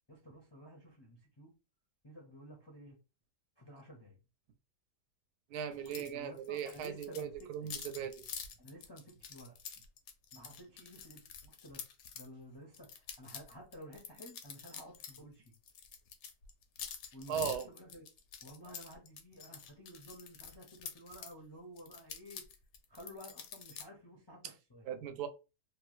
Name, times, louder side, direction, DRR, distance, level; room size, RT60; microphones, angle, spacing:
voice 1, 0.1-1.5 2.0-3.0 3.6-4.2 6.0-7.8 8.6-9.6 10.3-11.9 12.1-15.5 17.1-18.0 18.4-22.4 22.9-24.9, equal, 35° left, 0.4 m, -53 dB
voice 2, 5.5-8.2 17.3-17.7 24.9-25.3, right 8 dB, 80° right, 1.1 m, -38 dB
sound 1, 5.9-6.1 6.4-12.3 12.7-15.2 15.5-21.3 21.8-23.8, left 7 dB, 70° left, 1.0 m, -47 dB
3.0 x 2.2 x 3.0 m
omnidirectional pair, 1.7 m